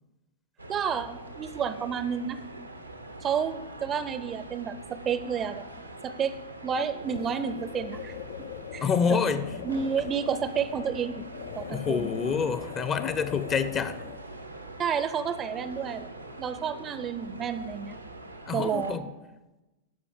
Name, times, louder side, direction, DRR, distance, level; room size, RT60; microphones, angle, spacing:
sound 1, 0.6-18.9, right 2 dB, 85° right, 0.8 m, -44 dB
voice 1, 0.7-2.4 3.2-5.7 6.0-6.3 6.6-8.1 8.7-9.2 9.6-11.3 11.6-12.1 14.8-16.1 16.4-18.0 18.5-19.0, right 7 dB, 25° right, 13 dB, 0.6 m, -30 dB
sound 2, 7.0-14.4, left 10 dB, 55° left, 0.4 m, -41 dB
voice 2, 8.8-9.5 11.7-14.0 18.5-19.0, left 6 dB, 25° left, 12 dB, 0.7 m, -27 dB
12.5 x 5.0 x 6.7 m, 1.1 s
figure-of-eight pair, 90°, 0 cm